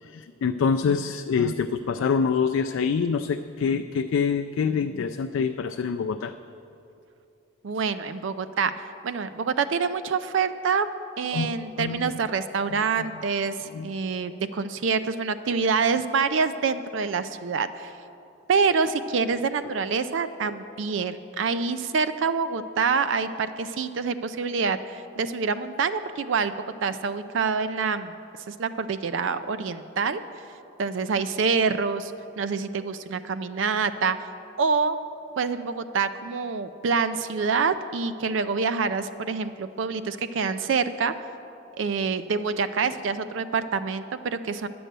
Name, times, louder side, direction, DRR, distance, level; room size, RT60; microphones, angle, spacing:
voice 1, 0.0-6.3 11.3-11.5 11.8-12.1 12.7-12.8 13.7-13.9, left 6 dB, 80° left, 8 dB, 0.3 m, -26 dB
voice 2, 7.6-10.9 11.2-17.9 18.5-28.1 28.5-30.4 30.8-34.2 34.6-35.0 35.4-41.1 41.8-44.7, right 5 dB, 70° right, 12 dB, 0.4 m, -26 dB
11.0 x 7.8 x 6.7 m, 2.8 s
head